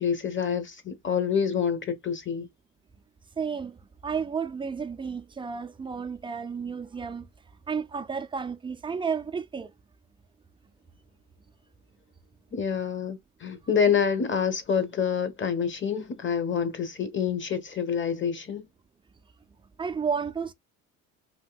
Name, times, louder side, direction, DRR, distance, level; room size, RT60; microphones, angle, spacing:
voice 1, 0.0-2.5 12.5-18.7, left 7 dB, 30° left, 1.0 m, -27 dB
voice 2, 3.4-7.3 7.7-9.7 19.8-20.5, right 6 dB, 15° right, 0.3 m, -32 dB
3.5 x 2.7 x 2.3 m
supercardioid pair, 80°, 41 cm